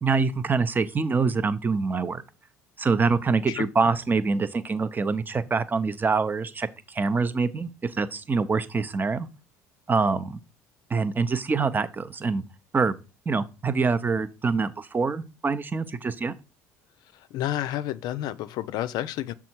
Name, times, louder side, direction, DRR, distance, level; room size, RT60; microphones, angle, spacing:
voice 1, 0.0-2.2 2.8-9.3 9.9-10.4 10.9-12.4 12.7-12.9 13.3-16.3, right 4 dB, 25° right, 0.6 m, -25 dB
voice 2, 17.3-19.3, left 13 dB, 65° left, 0.4 m, -30 dB
6.3 x 3.6 x 4.4 m
hypercardioid pair, 75°, 8 cm